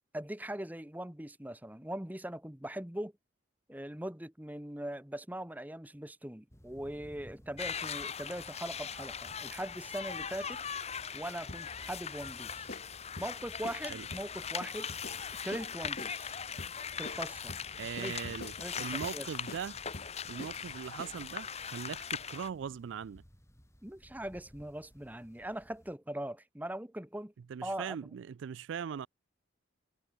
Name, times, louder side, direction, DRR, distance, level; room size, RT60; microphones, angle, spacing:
voice 1, 0.1-3.1 3.7-10.6 11.1-12.7 13.2-14.9 15.4-16.4 17.0-17.6 18.0-18.1 18.6-19.3 23.8-27.3 27.6-28.0, right 1 dB, 10° right, 1.2 m, -41 dB
sound 1, 6.5-26.0, equal, 15° left, 8.0 m, -58 dB
sound 2, 7.6-22.5, left 7 dB, 35° left, 1.2 m, -40 dB
sound 3, 11.5-21.4, left 2 dB, 50° left, 1.4 m, -48 dB
voice 2, 17.7-19.8 20.2-23.2 27.5-29.1, right 7 dB, 70° right, 0.3 m, -40 dB
head